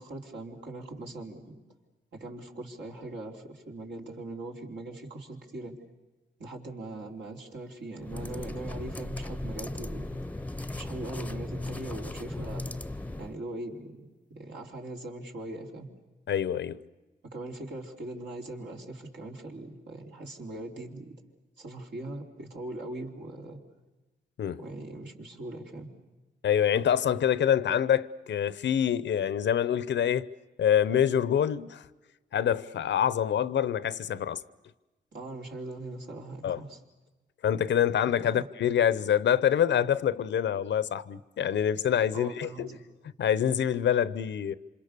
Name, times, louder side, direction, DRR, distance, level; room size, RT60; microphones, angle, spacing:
voice 1, 0.0-1.6 2.1-5.7 6.4-10.2 10.7-12.6 13.2-14.0 14.3-15.9 17.3-21.1 21.6-23.6 24.6-25.9 35.1-36.8 38.2-38.3 42.1-42.8, right 2 dB, 75° right, 4.0 m, -40 dB
sound 1, 8.0-13.4, left 2 dB, 10° left, 0.8 m, -37 dB
voice 2, 16.3-16.8 24.4-24.6 26.4-30.3 30.6-31.9 32.3-34.4 36.4-36.6 37.4-42.7 43.2-44.5, left 9 dB, 85° left, 0.8 m, -26 dB
28.0 x 26.5 x 6.8 m
cardioid pair, 80°, 18 cm